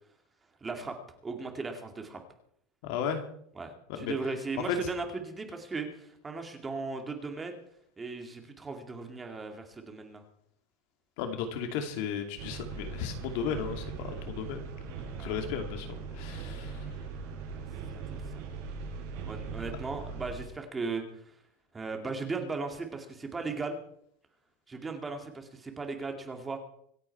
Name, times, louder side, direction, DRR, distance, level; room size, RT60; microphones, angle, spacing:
voice 1, 0.6-1.0 1.2-2.2 3.6-7.6 8.0-10.2 15.2-15.4 17.4-17.7 19.3-21.4 21.7-23.8 24.7-26.6, right 4 dB, 15° right, 5 dB, 2.4 m, -37 dB
voice 2, 2.8-3.2 3.9-4.1 11.2-16.8, left 7 dB, 65° left, 6 dB, 2.6 m, -35 dB
sound 1, 12.4-20.4, right 5 dB, 60° right, 5.9 m, -40 dB
25.5 x 8.9 x 4.7 m, 0.68 s
supercardioid pair, 145°, 0 cm